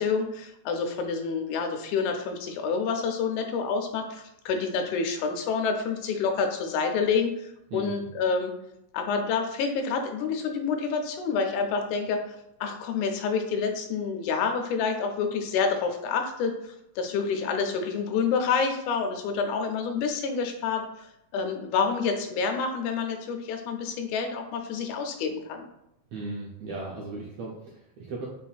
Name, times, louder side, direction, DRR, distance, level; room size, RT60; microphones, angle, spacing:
voice 1, 0.0-8.6 8.9-12.2 12.6-21.1 21.3-25.7, left 5 dB, 85° left, 4 dB, 2.0 m, -28 dB
voice 2, 7.7-8.1 26.1-28.3, right 3 dB, 80° right, -3 dB, 1.4 m, -36 dB
5.5 x 2.4 x 2.3 m, 0.82 s
omnidirectional pair, 3.4 m